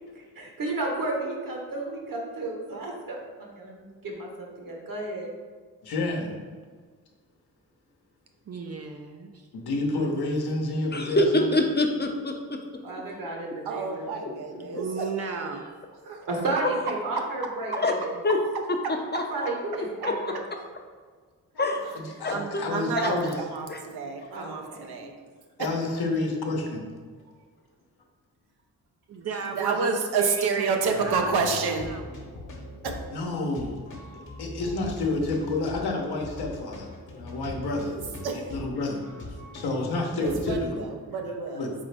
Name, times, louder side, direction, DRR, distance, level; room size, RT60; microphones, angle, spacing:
voice 1, 0.1-5.3 12.8-14.8 16.3-17.7 18.0-18.1 19.3-20.4 24.3-24.9, right 2 dB, 55° right, 0 dB, 1.2 m, -33 dB
voice 2, 5.8-6.4 9.5-11.5 22.0-23.3 24.2-24.3 25.6-26.9 32.3-32.4 33.1-33.9 34.1-39.0 39.5-40.9 41.5-41.7, left 2 dB, 70° left, 1 dB, 0.9 m, -30 dB
voice 3, 8.5-9.5 14.7-15.6 29.1-32.0, right 5 dB, 40° right, 4 dB, 0.5 m, -35 dB
voice 4, 10.9-12.6 17.7-17.9 18.2-18.4 18.7-19.2 20.0-20.1 21.6-21.8 22.2-22.4 22.9-23.4 23.7-23.8 25.0-25.1, left 2 dB, 25° left, 3 dB, 0.6 m, -25 dB
voice 5, 13.7-15.1 16.1-16.2 22.3-25.1 25.6-25.7 29.6-31.9 32.8-32.9 37.8-38.4 40.2-41.7, right 4 dB, 75° right, 3 dB, 0.7 m, -29 dB
sound 1, 30.9-40.6, left 1 dB, 50° left, 1.1 m, -41 dB
3.8 x 3.7 x 3.4 m, 1.6 s
supercardioid pair, 50°, 39 cm